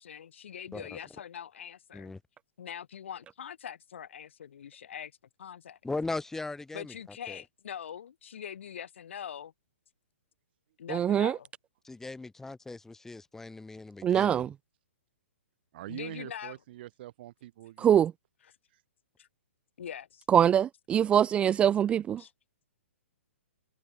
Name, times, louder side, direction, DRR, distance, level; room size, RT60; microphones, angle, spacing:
voice 1, 0.0-2.1 2.6-5.1 5.4-5.8 6.7-9.5 10.8-11.5 15.9-16.5 18.4-18.5 19.2-19.3 19.8-20.2 22.2-22.3, left 8 dB, 65° left, 4.9 m, -43 dB
voice 2, 5.8-7.4 11.8-14.5, left 3 dB, 5° left, 1.6 m, -39 dB
voice 3, 10.9-11.3 14.0-14.5 17.8-18.1 20.3-22.2, right 9 dB, 15° right, 0.3 m, -23 dB
voice 4, 15.7-18.0 18.7-18.8 21.4-22.1, right 15 dB, 50° right, 7.6 m, -45 dB
hypercardioid pair, 130°, 7 cm